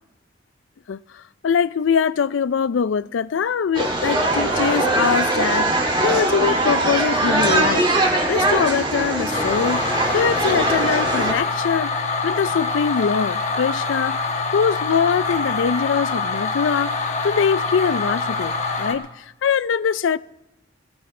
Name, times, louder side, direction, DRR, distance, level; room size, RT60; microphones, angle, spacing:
voice 1, 0.9-7.9 8.3-12.0 12.2-20.2, left 6 dB, 90° left, 0.4 m, -23 dB
sound 1, 3.7-11.3, right 2 dB, 25° right, 2.2 m, -21 dB
sound 2, 9.3-18.9, left 3 dB, 40° left, 1.3 m, -25 dB
20.0 x 16.0 x 3.2 m
head